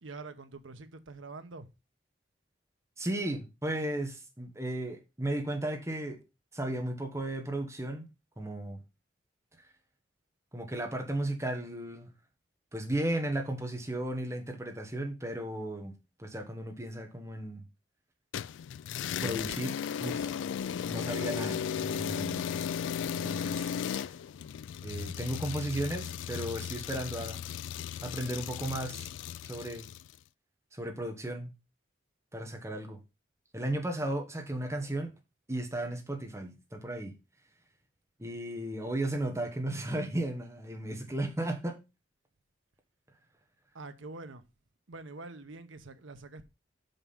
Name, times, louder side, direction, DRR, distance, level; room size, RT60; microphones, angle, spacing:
voice 1, 0.0-1.7 43.7-44.4 44.9-46.5, right 3 dB, 90° right, 0.9 m, -45 dB
voice 2, 3.0-6.2 6.5-8.1 8.4-8.8 10.5-12.1 12.7-17.6 19.2-20.2 20.8-22.7 23.1-23.7 24.8-27.5 28.0-29.1 29.4-29.9 30.7-31.5 32.3-33.0 33.5-35.1 35.5-37.2 38.2-41.8, right 1 dB, 15° right, 1.2 m, -35 dB
sound 1, 18.3-30.1, left 8 dB, 80° left, 0.3 m, -36 dB
6.1 x 5.3 x 5.6 m
head